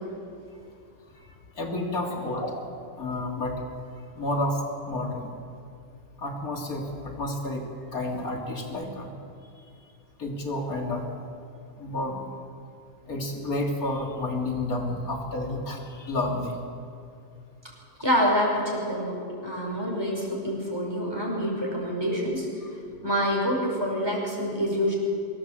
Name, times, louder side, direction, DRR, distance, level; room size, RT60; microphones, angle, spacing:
voice 1, 1.6-2.6 3.0-3.5 4.2-4.6 4.9-5.3 6.2-6.8 7.2-7.6 7.9-9.1 10.2-11.1 11.8-12.3 13.1-16.6, left 2 dB, 80° left, 0 dB, 3.1 m, -30 dB
voice 2, 18.0-22.5 23.0-24.9, equal, 15° right, -2 dB, 5.1 m, -26 dB
24.0 x 14.0 x 7.6 m, 2.4 s
omnidirectional pair, 1.5 m